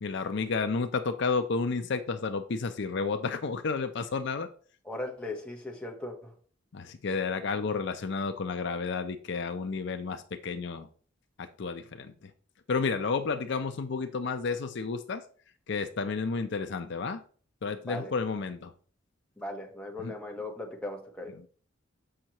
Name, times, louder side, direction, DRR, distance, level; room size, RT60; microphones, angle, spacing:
voice 1, 0.0-4.5 6.7-10.9 11.4-12.1 12.7-15.2 15.7-17.2 17.6-18.7 20.0-20.1, left 4 dB, 60° left, 0.5 m, -31 dB
voice 2, 4.8-6.3 17.9-18.1 19.4-21.3, left 2 dB, 5° left, 1.1 m, -38 dB
7.6 x 5.5 x 2.9 m
head